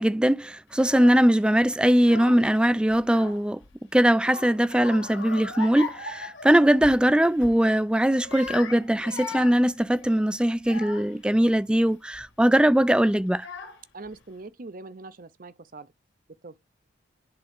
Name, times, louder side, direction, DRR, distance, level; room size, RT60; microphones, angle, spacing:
voice 1, 0.0-3.6 3.9-13.5, right 1 dB, 5° right, 0.3 m, -21 dB
Child speech kid speaking / Crying sobbing, 0.7-1.3 1.9-2.6 2.9-3.7 4.2-7.0 7.4-7.6 8.1-11.3 11.9-12.3 13.0-13.1 13.4-14.1, left 4 dB, 70° left, 1.9 m, -39 dB
voice 2, 13.9-15.9 16.4-16.6, right 3 dB, 45° right, 0.6 m, -42 dB
10.5 x 3.7 x 3.6 m
head